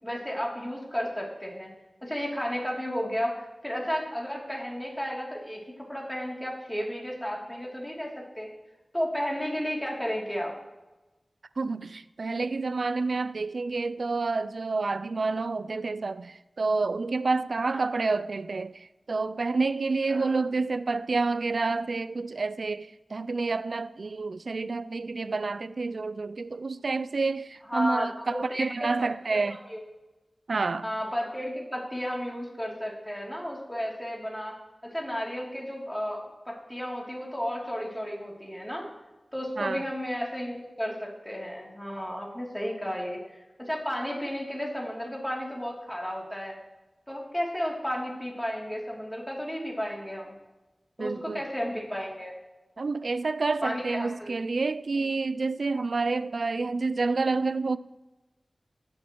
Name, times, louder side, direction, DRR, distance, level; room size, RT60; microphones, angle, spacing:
voice 1, 0.0-1.7 2.0-8.5 8.9-10.5 17.6-17.9 20.1-20.3 27.7-29.8 30.8-34.5 34.9-38.9 39.3-43.2 43.6-46.6 47.1-50.3 51.0-52.4 53.6-54.3, equal, 10° left, 2.9 m, -33 dB
voice 2, 11.6-29.6 30.5-30.9 39.6-39.8 51.0-51.4 52.8-57.8, right 3 dB, 75° right, 0.3 m, -29 dB
16.5 x 7.2 x 3.1 m
cardioid pair, 45°, 0 cm